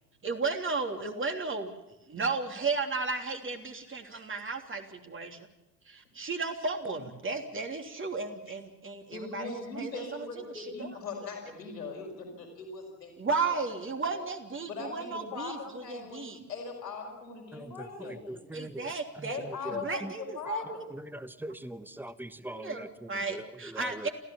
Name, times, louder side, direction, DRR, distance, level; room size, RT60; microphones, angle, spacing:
voice 1, 0.2-1.7 2.1-5.4 5.9-10.9 13.2-16.4 18.5-19.4 19.7-20.8 22.5-24.1, right 4 dB, 25° right, 4 dB, 3.2 m, -34 dB
voice 2, 3.9-4.2 9.1-13.2 13.4-13.8 14.1-14.2 14.7-18.5 19.3-20.9 21.9-22.0, left 4 dB, 85° left, 1 dB, 5.3 m, -40 dB
voice 3, 17.5-18.9 19.2-20.1 20.9-22.9 23.3-24.1, right 1 dB, 5° right, 15 dB, 1.1 m, -42 dB
29.0 x 15.0 x 7.2 m, 0.98 s
figure-of-eight pair, 65°, 48 cm